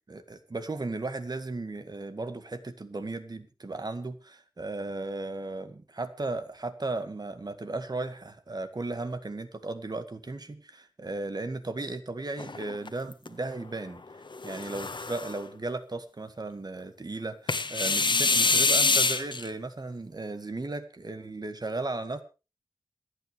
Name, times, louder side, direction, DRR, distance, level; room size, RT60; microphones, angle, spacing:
voice 1, 0.1-14.0 14.4-22.2, right 2 dB, 50° right, 10 dB, 1.9 m, -35 dB
sound 1, 12.4-13.3 14.3-15.4 17.5-19.5, left 3 dB, 65° left, 1.3 m, -25 dB
26.5 x 9.3 x 3.3 m, 0.31 s
wide cardioid pair, 80°, 9 cm